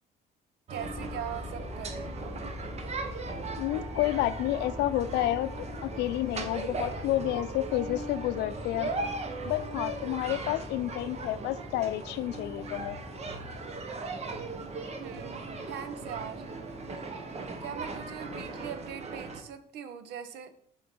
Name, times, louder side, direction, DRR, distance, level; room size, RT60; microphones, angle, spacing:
sound 1, 0.7-19.4, right 3 dB, 40° right, 1.0 m, -38 dB
voice 1, 0.7-2.2 15.0-15.4 15.7-16.5 17.6-20.6, right 9 dB, 80° right, 10 dB, 0.9 m, -41 dB
sound 2, 0.8-18.7, left 3 dB, 15° left, 0.6 m, -44 dB
voice 2, 3.6-5.5 5.8-8.9 9.4-13.0, left 15 dB, 85° left, 14 dB, 0.5 m, -30 dB
6.8 x 4.5 x 5.4 m, 0.62 s
cardioid pair, 110°, 17 cm